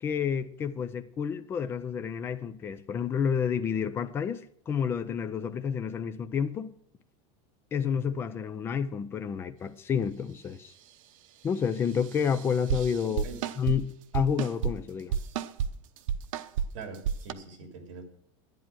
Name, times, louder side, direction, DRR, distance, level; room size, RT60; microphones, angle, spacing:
voice 1, 0.0-6.7 7.7-10.7 11.4-13.3 13.6-15.2, left 7 dB, 15° left, 0.5 m, -30 dB
sound 1, 12.0-13.8 14.1-14.7 15.1-15.7 16.0-16.7 16.9-17.3, right 8 dB, 90° right, 0.9 m, -30 dB
voice 2, 13.0-13.4 16.7-18.0, right 5 dB, 70° right, 3.4 m, -43 dB
11.0 x 10.5 x 6.1 m
supercardioid pair, 180°, 17 cm